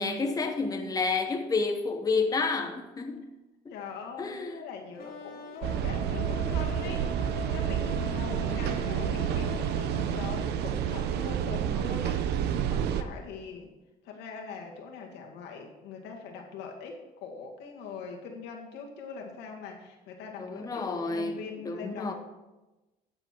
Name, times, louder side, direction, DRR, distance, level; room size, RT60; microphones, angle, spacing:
voice 1, 0.0-3.2 3.6-3.7 4.2-4.6 8.5-9.0 20.4-22.1, left 4 dB, 20° left, 1.0 m, -30 dB
voice 2, 3.7-13.7 14.0-22.1, left 5 dB, 90° left, 2.1 m, -42 dB
sound 1, 5.0-10.8, left 4 dB, 60° left, 2.3 m, -42 dB
sound 2, 5.6-13.0, right 9 dB, 80° right, 0.8 m, -29 dB
12.5 x 7.8 x 4.6 m
cardioid pair, 110°, 17 cm